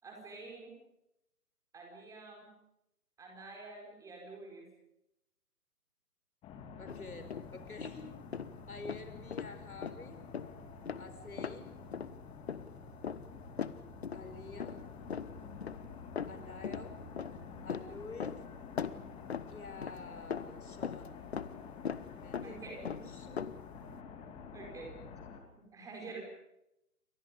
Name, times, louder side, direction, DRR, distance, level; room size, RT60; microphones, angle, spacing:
voice 1, 0.0-0.8 1.7-2.5 3.2-4.7 22.4-22.9 23.8-23.9 24.5-25.0 25.6-26.2, right 3 dB, 5° right, 0 dB, 4.7 m, -48 dB
sound 1, 6.4-25.4, left 5 dB, 10° left, 2.4 m, -49 dB
voice 2, 6.8-8.1 8.7-10.2 11.0-11.8 14.1-14.9 16.3-17.0 17.6-18.4 19.5-21.2 22.2-22.6 23.0-23.4, left 3 dB, 65° left, 8 dB, 4.9 m, -48 dB
sound 2, 6.9-7.5 7.8-8.0 8.3-8.5 8.9-9.6 9.8-10.0 10.3-10.5 10.9-11.1 11.4-11.6 11.9-12.2 12.5-12.8 13.0-14.3 14.6-14.9 15.1-15.8 16.2-16.9 17.2-18.5 18.8-20.1 20.3-21.6 21.9-22.1 22.3-22.6 22.9-23.6, left 7 dB, 45° left, 1.2 m, -39 dB
29.5 x 25.0 x 5.3 m, 0.85 s
figure-of-eight pair, 140°, 46 cm